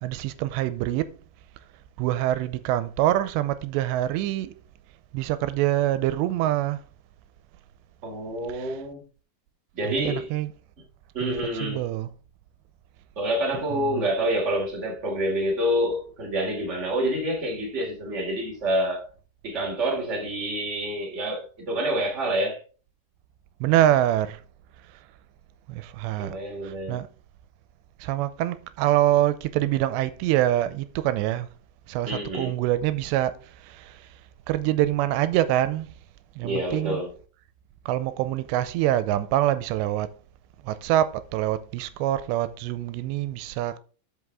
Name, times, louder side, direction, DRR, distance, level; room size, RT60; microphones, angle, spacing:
voice 1, 0.0-1.1 2.0-4.5 5.1-6.8 8.5-8.8 9.9-10.5 11.2-12.1 13.7-14.0 23.6-24.4 25.7-26.4 26.6-27.1 28.0-31.5 31.9-34.1 34.5-35.9 36.4-37.0 37.9-40.1 40.6-43.8, right 13 dB, 90° right, 2.8 m, -25 dB
voice 2, 8.0-9.0 9.7-10.3 11.1-11.8 13.2-19.1 19.4-22.6 26.2-27.0 32.0-32.6 36.4-37.1, equal, 20° right, 2.7 m, -27 dB
12.5 x 5.4 x 3.6 m
omnidirectional pair, 5.0 m